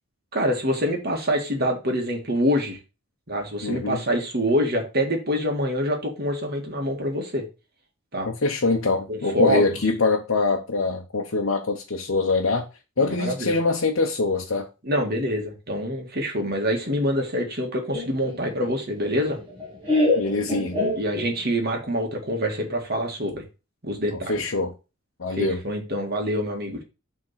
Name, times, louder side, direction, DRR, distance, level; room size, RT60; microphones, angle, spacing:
voice 1, 0.3-2.8 3.3-7.5 8.1-8.3 9.1-9.6 13.0-13.6 14.8-19.4 20.9-23.4 23.8-24.4 25.4-26.8, equal, 45° right, 1.9 m, -25 dB
voice 2, 3.6-4.0 8.3-12.6 13.0-14.7 20.2-20.8 24.3-24.7 25.2-25.6, left 3 dB, 70° left, 0.9 m, -24 dB
Laughter, 17.9-21.6, left 2 dB, 25° right, 2.2 m, -26 dB
6.4 x 3.7 x 5.6 m
head